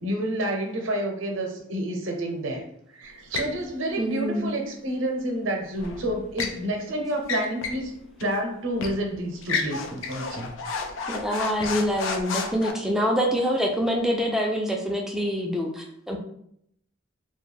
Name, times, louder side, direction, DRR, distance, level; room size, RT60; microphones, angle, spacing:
voice 1, 0.0-2.7 3.0-7.9 8.2-10.8, right 1 dB, 85° right, 2 dB, 0.6 m, -29 dB
sound 1, 3.3-3.6 5.8-6.6 7.2-7.9 8.2-8.3 8.8-9.0 9.4-12.7, left 4 dB, 85° left, 0.4 m, -31 dB
voice 2, 4.0-4.6 11.1-16.2, equal, 5° right, 1 dB, 0.3 m, -25 dB
2.3 x 2.1 x 3.2 m, 0.72 s
head